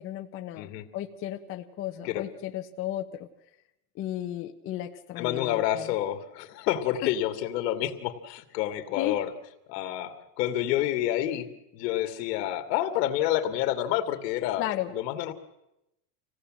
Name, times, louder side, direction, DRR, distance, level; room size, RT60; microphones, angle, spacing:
voice 1, 0.0-3.3 3.9-5.9 7.0-7.1 9.0-9.2 14.6-14.9, left 13 dB, 25° left, 5 dB, 0.8 m, -34 dB
voice 2, 0.6-0.9 2.0-2.2 5.2-9.3 9.7-14.7 14.9-15.3, left 12 dB, 80° left, 8 dB, 2.2 m, -29 dB
26.0 x 17.0 x 7.5 m, 0.89 s
cardioid pair, 175°, 49 cm